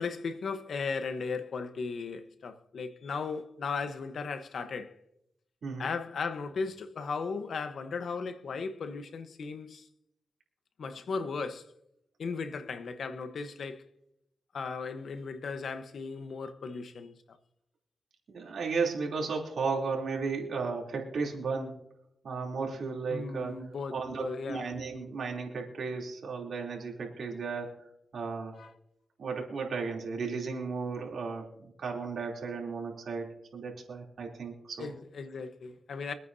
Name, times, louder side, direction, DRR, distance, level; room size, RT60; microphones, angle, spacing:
voice 1, 0.0-5.0 5.8-9.9 10.8-11.7 12.2-13.8 14.5-17.4 18.4-18.5 23.1-24.7 28.6-28.7 34.8-36.1, left 4 dB, 80° left, 1.0 m, -36 dB
voice 2, 18.3-21.8 22.2-23.5 23.9-27.8 28.1-28.6 29.2-34.9, right 4 dB, 80° right, 3.1 m, -34 dB
24.5 x 9.1 x 2.7 m
cardioid pair, 75°, 0 cm